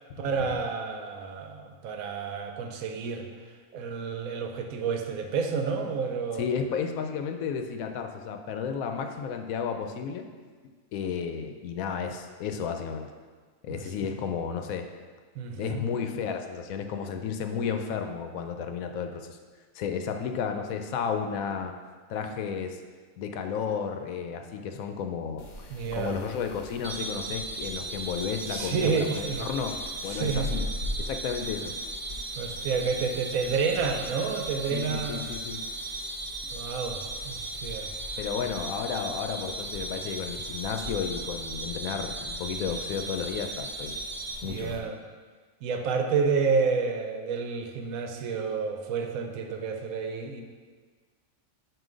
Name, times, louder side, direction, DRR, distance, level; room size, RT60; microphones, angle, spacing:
voice 1, 0.2-3.3 3.7-6.4 13.7-13.9 15.4-15.8 25.7-26.2 28.5-29.5 30.1-30.5 32.4-35.2 36.5-37.9 44.4-45.0 45.6-50.4, right 5 dB, 80° right, 5 dB, 1.1 m, -30 dB
voice 2, 6.4-10.2 10.9-13.1 13.6-14.9 15.6-19.4 19.7-21.7 22.1-22.8 23.2-25.5 25.9-29.8 30.0-30.6 31.0-31.8 34.7-35.6 38.2-44.0 44.4-44.9, left 6 dB, 80° left, 6 dB, 1.0 m, -32 dB
sound 1, 25.4-44.8, left 1 dB, 55° left, 1.0 m, -42 dB
sound 2, 26.8-44.3, right 2 dB, 60° right, 1.5 m, -37 dB
7.7 x 2.6 x 5.0 m, 1.5 s
omnidirectional pair, 1.5 m